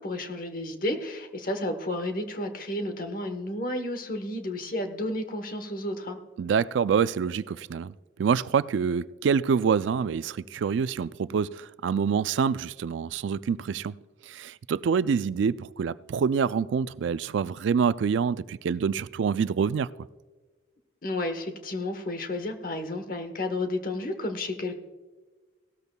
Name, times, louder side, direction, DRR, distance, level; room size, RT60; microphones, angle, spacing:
voice 1, 0.0-6.2 21.0-24.8, left 1 dB, 45° left, 1.1 m, -32 dB
voice 2, 6.4-7.9 8.2-14.0 14.2-19.9, right 6 dB, 80° right, 0.3 m, -26 dB
17.0 x 13.5 x 2.3 m
head